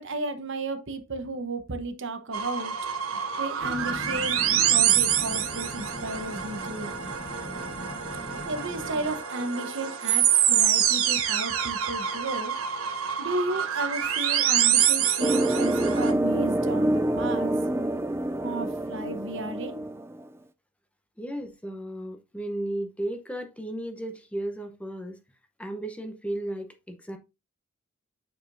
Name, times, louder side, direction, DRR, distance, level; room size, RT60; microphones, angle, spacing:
voice 1, 0.0-2.7 3.4-6.9 8.5-12.5 13.2-17.6 18.4-19.9, right 2 dB, 65° right, 1.0 m, -33 dB
sound 1, 2.3-16.1, right 9 dB, 85° right, 1.1 m, -26 dB
sound 2, 3.6-9.1, left 1 dB, 55° left, 2.2 m, -40 dB
sound 3, 15.2-20.3, right 1 dB, 10° right, 0.4 m, -26 dB
voice 2, 21.2-25.2 25.6-27.2, right 1 dB, 5° left, 0.8 m, -34 dB
8.9 x 4.7 x 2.6 m
head